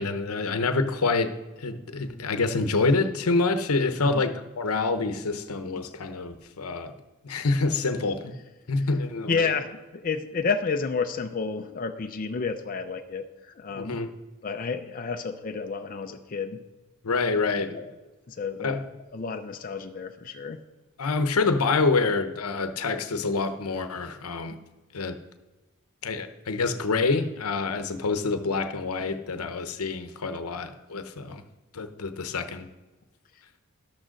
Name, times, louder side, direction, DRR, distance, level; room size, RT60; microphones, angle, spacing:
voice 1, 0.0-1.3 1.6-6.9 7.2-8.4 8.7-9.5 13.8-14.1 17.0-17.8 18.6-18.8 21.0-24.6 24.9-25.2 26.0-31.4 31.7-32.7, left 3 dB, 85° left, 8 dB, 0.8 m, -27 dB
voice 2, 9.3-14.0 14.4-16.6 17.4-17.9 18.3-18.8 19.1-20.6, left 5 dB, 40° left, 5 dB, 0.5 m, -30 dB
12.0 x 6.3 x 6.4 m, 1.2 s
head